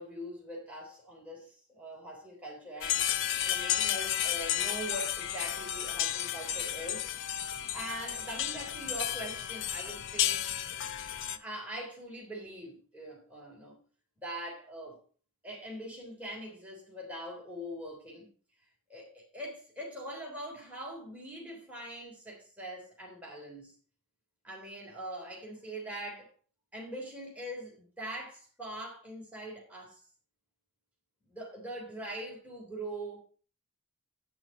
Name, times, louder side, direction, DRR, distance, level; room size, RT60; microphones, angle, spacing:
voice 1, 0.0-3.0 3.4-7.1 7.7-10.5 11.3-13.8 14.2-15.0 15.4-18.3 18.9-23.7 24.4-26.3 26.7-30.0 31.3-33.2, right 1 dB, 5° right, 3.2 m, -42 dB
sound 1, 2.8-11.4, left 11 dB, 60° left, 0.6 m, -32 dB
9.6 x 6.2 x 5.3 m
head